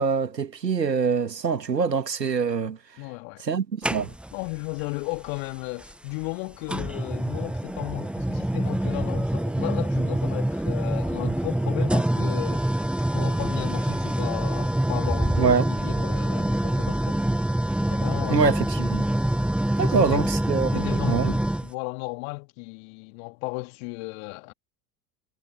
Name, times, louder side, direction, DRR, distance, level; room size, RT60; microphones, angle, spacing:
voice 1, 0.0-2.8 3.4-4.1 15.4-15.7 18.3-19.1 19.8-21.3, right 5 dB, 85° right, 2.1 m, -24 dB
voice 2, 3.0-3.4 4.3-12.8 13.1-17.3 17.9-18.5 19.8-20.2 20.6-24.5, left 34 dB, 55° left, 2.8 m, -35 dB
sound 1, 3.8-4.5 5.8-5.9 6.7-21.7, right 1 dB, ahead, 1.1 m, -25 dB
figure-of-eight pair, 75°, 49 cm